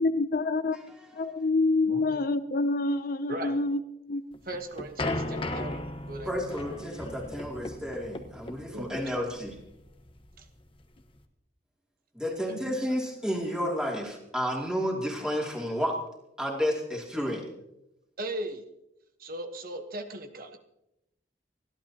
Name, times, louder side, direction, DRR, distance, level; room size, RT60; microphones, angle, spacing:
voice 1, 0.0-0.8 1.2-3.8 4.1-4.4, left 3 dB, 55° left, 11 dB, 0.6 m, -27 dB
voice 2, 1.8-2.2 3.3-3.6 4.4-6.9 8.7-9.1 10.4-10.5 12.5-12.9 18.2-18.6 19.2-20.6, right 1 dB, 55° right, 6 dB, 1.2 m, -38 dB
sound 1, 4.3-11.2, left 1 dB, 30° left, 1.1 m, -36 dB
voice 3, 6.3-9.6 12.1-16.0 16.4-17.5, equal, 5° right, -2 dB, 2.8 m, -31 dB
30.0 x 11.5 x 2.9 m, 0.86 s
head